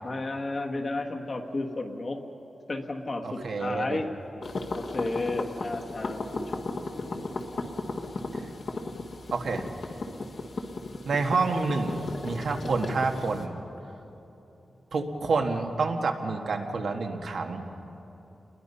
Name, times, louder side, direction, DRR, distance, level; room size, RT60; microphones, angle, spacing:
voice 1, 0.0-2.2 2.7-4.1 4.7-7.2, left 2 dB, 35° left, 3 dB, 1.4 m, -33 dB
voice 2, 3.2-4.0 8.3-8.4 9.3-9.6 11.0-13.5 14.9-17.6, right 4 dB, 65° right, 3 dB, 1.6 m, -28 dB
sound 1, 4.4-13.4, left 2 dB, 50° left, 1.5 m, -36 dB
28.0 x 21.5 x 5.6 m, 3.0 s
wide cardioid pair, 180°, 0 cm